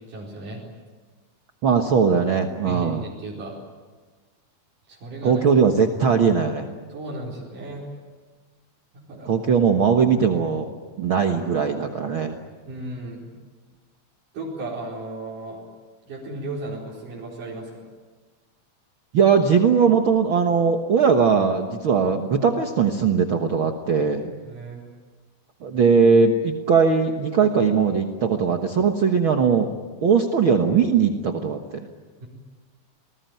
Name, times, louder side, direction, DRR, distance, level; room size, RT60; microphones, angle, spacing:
voice 1, 0.1-0.6 2.6-3.5 4.9-5.5 6.9-7.9 9.1-9.3 12.7-13.3 14.3-15.6 16.0-17.7 24.5-24.8 32.2-32.3, right 2 dB, 80° right, -4 dB, 6.1 m, -35 dB
voice 2, 1.6-3.0 5.2-6.7 9.3-10.7 11.0-12.4 19.1-24.3 25.6-29.7 30.0-31.9, right 6 dB, 50° right, 4 dB, 1.7 m, -20 dB
29.0 x 20.5 x 9.3 m, 1.4 s
omnidirectional pair, 3.6 m